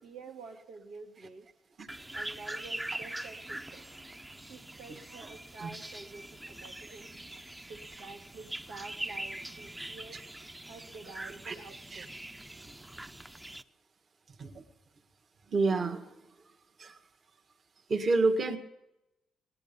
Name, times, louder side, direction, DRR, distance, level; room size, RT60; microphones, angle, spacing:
voice 1, 0.0-1.5 2.1-3.8 4.5-7.2 7.7-10.2 10.7-12.1, right 4 dB, 90° right, -1 dB, 2.3 m, -49 dB
sound 1, 1.9-13.6, right 1 dB, 10° right, 0.7 m, -43 dB
voice 2, 15.5-16.1 16.8-17.0 17.9-18.6, right 3 dB, 45° right, 5 dB, 1.7 m, -28 dB
18.5 x 10.5 x 6.9 m, 0.89 s
cardioid pair, 90°, 0 cm